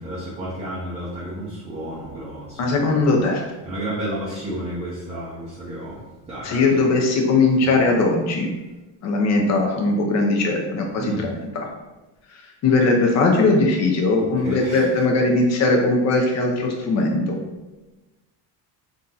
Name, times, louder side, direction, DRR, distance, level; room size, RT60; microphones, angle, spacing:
voice 1, 0.0-3.1 3.6-6.0 6.3-6.5 7.6-7.7 11.0-11.3 14.2-14.9, right 1 dB, 15° right, -7 dB, 0.5 m, -32 dB
voice 2, 2.6-3.4 6.4-8.5 9.0-11.7 12.6-17.3, left 3 dB, 35° left, 1 dB, 0.6 m, -19 dB
3.6 x 2.8 x 3.8 m, 1.1 s
cardioid pair, 165°, 47 cm